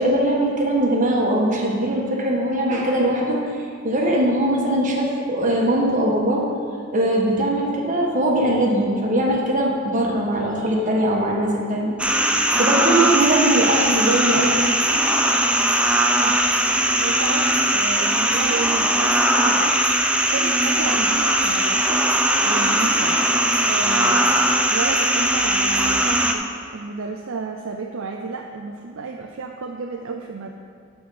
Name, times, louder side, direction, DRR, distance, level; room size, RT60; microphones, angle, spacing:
voice 1, 0.0-3.6 3.8-6.4 6.9-14.6, right 1 dB, 40° right, -2 dB, 1.4 m, -21 dB
sound 1, 12.0-26.3, right 1 dB, 5° right, 0.5 m, -19 dB
voice 2, 17.0-19.8 20.3-22.0 22.4-23.2 23.6-24.4 24.7-30.5, right 4 dB, 75° right, 3 dB, 0.5 m, -31 dB
12.5 x 4.5 x 5.5 m, 2.2 s
head